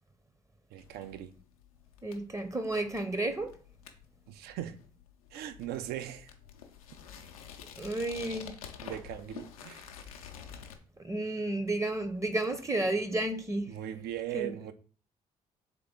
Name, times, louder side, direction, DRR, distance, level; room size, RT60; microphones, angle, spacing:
voice 1, 0.7-1.3 4.3-4.8 5.3-6.3 8.8-9.9 13.7-14.7, right 12 dB, 60° right, 0.4 m, -39 dB
sound 1, 0.8-10.8, left 8 dB, 90° left, 0.4 m, -49 dB
voice 2, 2.0-3.5 7.8-8.5 11.0-13.7 14.3-14.5, right 2 dB, 15° right, 0.6 m, -32 dB
3.5 x 3.5 x 3.6 m
hypercardioid pair, 45°, 18 cm